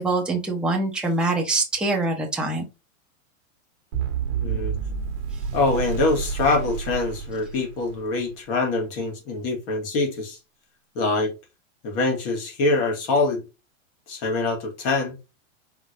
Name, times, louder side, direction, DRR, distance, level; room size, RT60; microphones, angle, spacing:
voice 1, 0.0-2.6, right 2 dB, ahead, 0.7 m, -24 dB
sound 1, 3.9-8.0, right 7 dB, 35° right, 1.4 m, -29 dB
voice 2, 4.4-4.8 5.5-10.4 11.0-11.3 11.8-13.4 14.1-15.2, left 3 dB, 35° left, 2.1 m, -24 dB
5.0 x 3.9 x 2.6 m
supercardioid pair, 165°, 40 cm